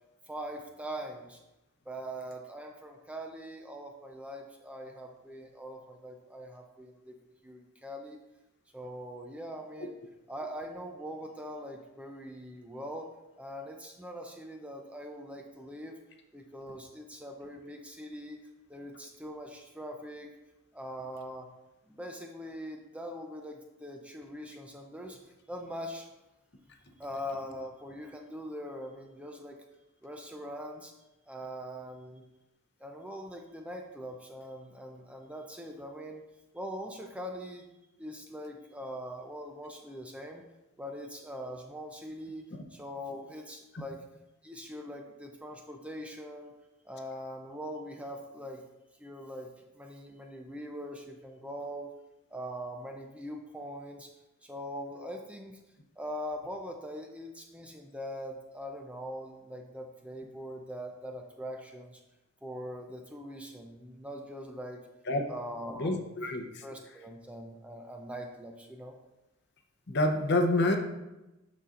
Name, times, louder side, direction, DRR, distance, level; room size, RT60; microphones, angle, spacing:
voice 1, 0.3-1.4 1.9-7.2 7.4-8.2 8.7-10.0 10.3-16.0 16.3-18.4 18.7-20.3 20.7-21.5 21.9-25.2 25.5-26.1 27.0-29.6 30.0-30.9 31.3-32.2 32.8-36.2 36.5-37.6 38.0-40.4 40.8-42.4 42.7-44.0 44.4-46.5 46.8-48.6 49.0-49.5 49.7-51.9 52.3-54.1 54.4-55.6 56.0-62.0 62.4-64.8 65.3-66.0 66.6-69.0, equal, 5° right, 2 dB, 0.4 m, -42 dB
voice 2, 65.8-66.5 69.9-70.8, left 1 dB, 50° left, 4 dB, 0.7 m, -27 dB
12.0 x 4.2 x 2.5 m, 0.99 s
head